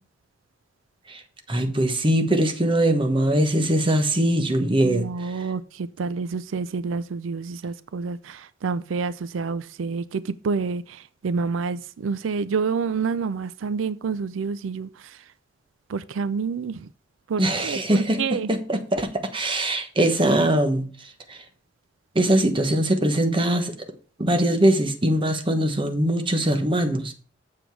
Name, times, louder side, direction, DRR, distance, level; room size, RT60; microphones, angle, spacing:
voice 1, 1.5-5.4 17.4-21.4 22.1-23.8 24.2-27.1, right 1 dB, 25° right, 1.1 m, -22 dB
voice 2, 4.8-15.2 15.9-16.9 17.3-18.5, right 5 dB, 90° right, 0.4 m, -28 dB
7.6 x 7.1 x 4.6 m
head